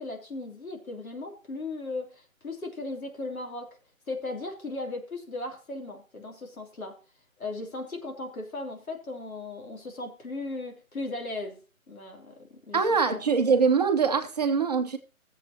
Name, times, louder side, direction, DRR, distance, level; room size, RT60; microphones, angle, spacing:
voice 1, 0.0-3.7 4.1-7.0 7.4-11.6 11.9-13.2, left 2 dB, 80° left, 3.3 m, -37 dB
voice 2, 12.7-15.0, right 5 dB, 30° right, 1.0 m, -23 dB
15.5 x 7.6 x 2.9 m
figure-of-eight pair, 160°, 42 cm